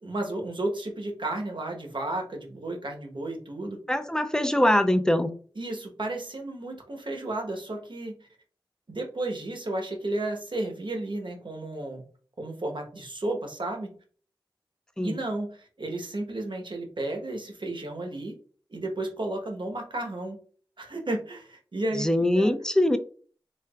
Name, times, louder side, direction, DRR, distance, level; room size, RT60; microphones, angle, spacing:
voice 1, 0.0-3.8 5.6-8.3 8.9-12.0 12.4-13.9 15.0-18.4 18.7-20.4 20.8-22.1 22.3-22.5, right 2 dB, 65° right, 2 dB, 1.1 m, -33 dB
voice 2, 3.9-5.3 15.0-15.2 22.0-23.0, left 1 dB, 5° left, 9 dB, 0.5 m, -23 dB
4.5 x 3.4 x 2.3 m, 0.43 s
wide cardioid pair, 55°, 9 cm